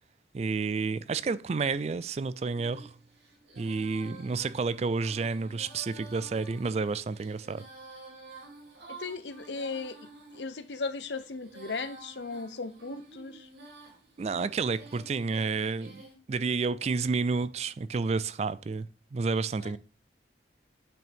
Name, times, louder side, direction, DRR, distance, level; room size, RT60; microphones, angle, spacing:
voice 1, 0.3-3.0 3.6-7.7 14.2-16.0 16.3-18.9 19.1-19.8, right 4 dB, 35° right, 0.3 m, -30 dB
Female singing, 2.5-16.1, right 3 dB, 90° right, 2.8 m, -51 dB
voice 2, 8.9-10.0 10.3-13.5 19.6-19.8, left 4 dB, 85° left, 0.8 m, -37 dB
9.0 x 6.0 x 3.5 m
head